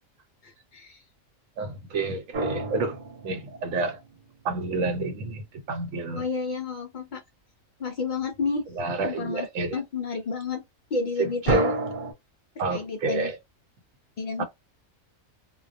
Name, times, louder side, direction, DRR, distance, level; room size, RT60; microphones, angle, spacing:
voice 1, 0.4-1.0 6.1-7.2 7.8-8.7 9.0-9.5 9.7-10.6 10.9-11.7 12.7-13.3 14.2-14.4, left 4 dB, 80° left, 0.4 m, -31 dB
voice 2, 1.6-4.0 4.4-6.2 8.8-9.8 11.2-11.6 12.6-13.4 14.4-14.5, right 3 dB, 75° right, 1.1 m, -29 dB
sound 1, 2.3-4.4 11.5-12.1, right 2 dB, 45° right, 0.9 m, -28 dB
2.3 x 2.1 x 2.5 m
omnidirectional pair, 1.4 m